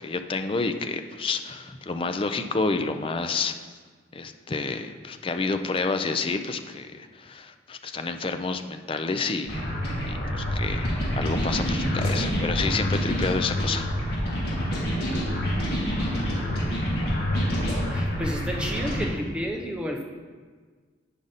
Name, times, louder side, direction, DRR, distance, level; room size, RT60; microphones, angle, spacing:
voice 1, 0.0-3.5 4.1-9.6 10.1-13.9, left 3 dB, 30° left, 7 dB, 0.4 m, -29 dB
sound 1, 9.5-19.1, equal, 60° left, 2.3 m, -27 dB
voice 2, 17.9-20.0, equal, 5° right, 1 dB, 0.7 m, -31 dB
9.9 x 5.1 x 4.1 m, 1.5 s
head